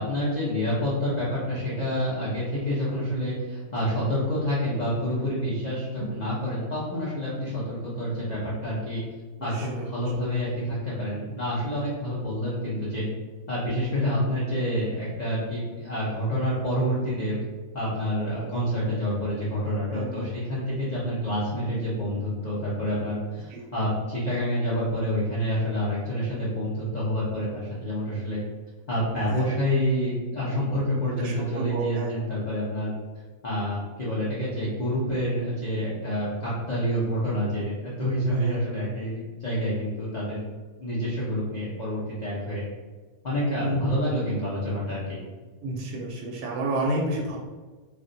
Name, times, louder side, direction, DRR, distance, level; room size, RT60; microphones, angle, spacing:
voice 1, 0.0-9.0 9.4-13.0 13.5-17.4 17.7-28.4 28.9-32.9 33.4-40.4 40.8-42.6 43.2-45.2, equal, 45° left, -8 dB, 0.6 m, -28 dB
voice 2, 9.4-9.9 19.9-20.7 23.5-23.8 29.3-29.4 31.2-32.1 38.3-38.6 43.6-44.2 45.6-47.4, right 1 dB, 80° right, -2 dB, 1.0 m, -31 dB
2.5 x 2.3 x 3.8 m, 1.3 s
omnidirectional pair, 1.5 m